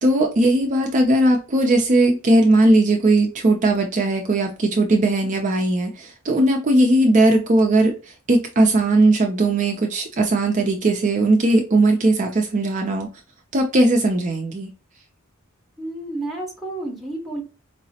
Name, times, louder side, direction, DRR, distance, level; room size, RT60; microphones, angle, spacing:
voice 1, 0.0-13.1 13.5-14.7, right 2 dB, 35° right, 0.4 m, -18 dB
voice 2, 15.8-17.4, right 2 dB, ahead, 0.9 m, -30 dB
4.7 x 2.0 x 2.7 m
head